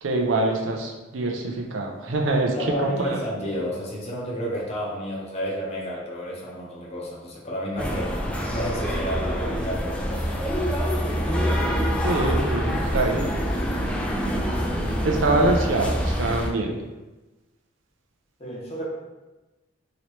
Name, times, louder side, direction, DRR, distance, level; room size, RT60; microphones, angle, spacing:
voice 1, 0.0-3.2 12.0-13.4 15.0-16.8, right 2 dB, 85° right, 1 dB, 0.5 m, -24 dB
voice 2, 2.5-8.2 8.5-10.7 18.4-18.8, equal, 35° left, -4 dB, 0.7 m, -31 dB
sound 1, 7.8-16.5, equal, 5° left, 0.3 m, -25 dB
3.0 x 2.8 x 3.0 m, 1.1 s
head